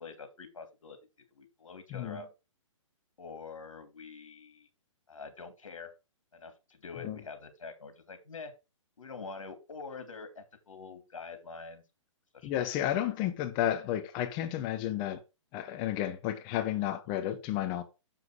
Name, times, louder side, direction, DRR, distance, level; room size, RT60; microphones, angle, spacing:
voice 1, 0.0-2.3 3.2-4.7 5.1-5.9 6.3-8.5 9.0-11.8 12.3-12.6 13.2-13.3, left 4 dB, 75° left, 2.6 m, -45 dB
voice 2, 1.9-2.2 7.0-7.2 12.4-15.2 15.5-17.8, left 12 dB, 30° left, 1.0 m, -32 dB
7.3 x 5.7 x 4.8 m
hypercardioid pair, 130°, 17 cm